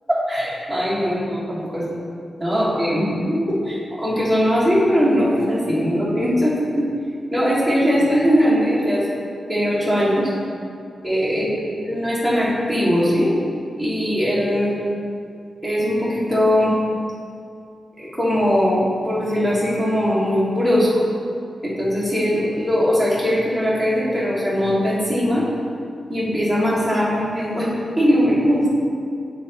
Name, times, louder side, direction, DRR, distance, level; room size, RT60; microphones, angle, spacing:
voice 1, 0.1-1.8 2.4-3.0 3.5-6.9 7.3-9.1 9.5-10.3 11.0-11.5 11.7-13.3 13.8-14.7 15.6-16.7 18.0-20.9 21.6-25.4 26.1-27.7 28.0-28.7, equal, 5° left, -9 dB, 1.4 m, -20 dB
9.1 x 3.8 x 2.9 m, 2.4 s
wide cardioid pair, 135°, 0 cm